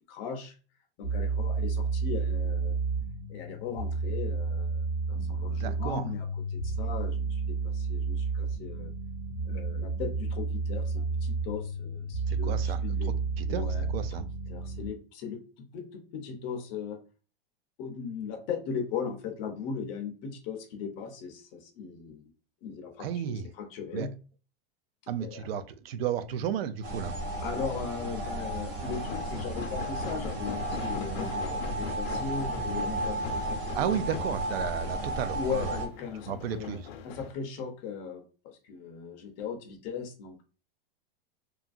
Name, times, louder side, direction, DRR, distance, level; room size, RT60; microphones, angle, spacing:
voice 1, 0.1-0.6 1.0-2.8 3.3-4.8 5.1-8.9 9.5-13.1 13.5-17.0 17.8-22.2 22.6-24.1 25.2-25.6 27.4-34.0 35.3-36.8 37.0-40.4, left 6 dB, 25° left, 0.4 m, -38 dB
sound 1, 1.0-14.9, right 4 dB, 35° right, 0.5 m, -31 dB
voice 2, 5.2-6.0 12.3-12.8 13.4-13.6 13.9-14.2 23.0-23.5 23.9-24.1 25.1-27.1 33.7-35.8 36.3-36.9, right 9 dB, 85° right, 0.5 m, -33 dB
sound 2, 26.8-35.9, right 2 dB, 65° right, 0.9 m, -34 dB
sound 3, 28.8-37.3, left 7 dB, 85° left, 0.5 m, -41 dB
2.8 x 2.4 x 2.4 m
supercardioid pair, 165°, 29 cm